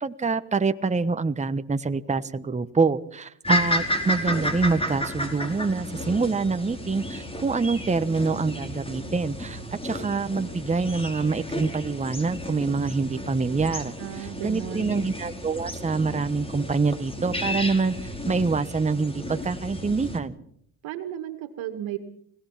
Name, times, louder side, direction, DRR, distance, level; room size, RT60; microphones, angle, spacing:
voice 1, 0.0-18.0 18.3-20.3, right 4 dB, 15° right, 10 dB, 1.1 m, -26 dB
sound 1, 3.4-20.2, left 1 dB, 10° left, 4.5 m, -32 dB
voice 2, 14.0-15.0 20.8-22.0, right 12 dB, 70° right, 7 dB, 2.2 m, -34 dB
25.0 x 18.0 x 5.8 m, 0.66 s
supercardioid pair, 85°, 48 cm